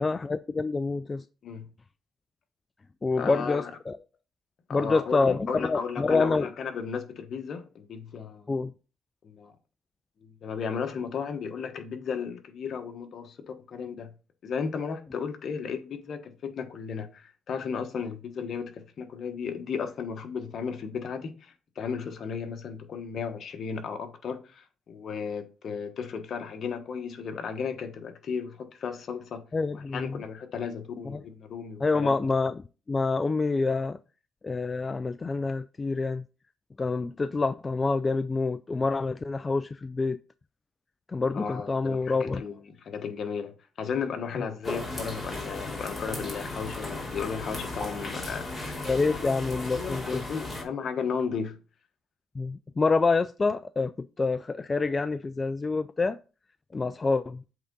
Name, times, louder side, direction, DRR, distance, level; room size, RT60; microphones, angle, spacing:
voice 1, 0.0-1.2 3.0-4.0 4.7-6.5 8.5-8.7 29.5-30.2 31.1-31.2 31.8-32.6 32.9-34.0 34.4-36.2 36.8-40.2 41.1-42.4 48.8-50.2 52.4-53.9 54.2-56.2 56.7-57.4, left 3 dB, 30° left, 0.3 m, -27 dB
voice 2, 3.1-3.7 4.7-8.5 9.2-9.5 10.2-13.4 13.7-14.1 14.4-29.4 29.7-32.1 41.3-48.8 49.2-49.3 49.7-51.6, left 6 dB, 60° left, 1.1 m, -34 dB
sound 1, 44.6-50.6, left 2 dB, 10° left, 3.0 m, -36 dB
7.9 x 3.8 x 3.8 m
cardioid pair, 90°, 0 cm